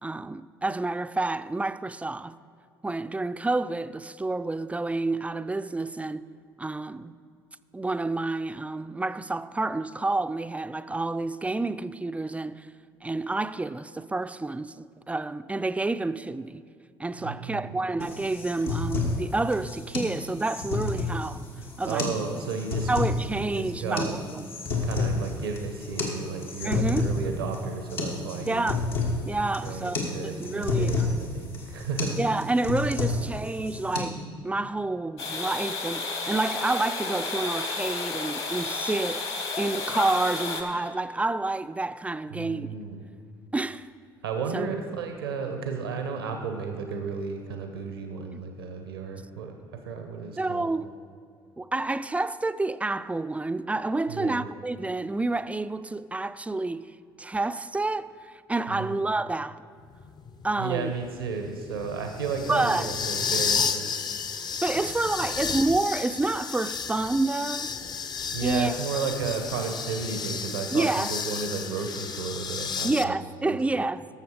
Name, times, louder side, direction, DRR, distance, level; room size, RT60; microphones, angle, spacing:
voice 1, 0.0-2.3 2.8-6.3 6.6-7.1 7.7-12.7 13.0-16.6 17.0-21.4 21.8-22.1 22.9-24.4 26.6-27.1 28.5-28.9 29.2-30.0 30.2-31.2 32.2-39.3 39.6-42.7 43.5-43.9 44.5-44.7 48.3-48.4 50.4-50.9 51.6-59.6 60.4-60.9 62.5-62.9 64.6-67.7 68.4-68.7 70.7-71.1 72.8-74.1, right 2 dB, 10° right, 0.3 m, -29 dB
voice 2, 17.2-17.8 21.8-22.9 23.3-24.1 24.8-28.7 29.6-32.2 42.3-43.0 44.2-49.5 49.8-50.7 54.1-54.4 58.7-59.0 60.6-64.2 64.7-64.9 68.3-73.1 73.4-73.9, right 5 dB, 85° right, 0.9 m, -33 dB
sound 1, 18.0-34.0, left 3 dB, 85° left, 1.8 m, -30 dB
sound 2, 35.2-40.6, left 3 dB, 55° left, 1.5 m, -31 dB
sound 3, 59.9-73.0, left 6 dB, 35° left, 0.5 m, -32 dB
12.5 x 6.8 x 4.8 m
hypercardioid pair, 60°, 12 cm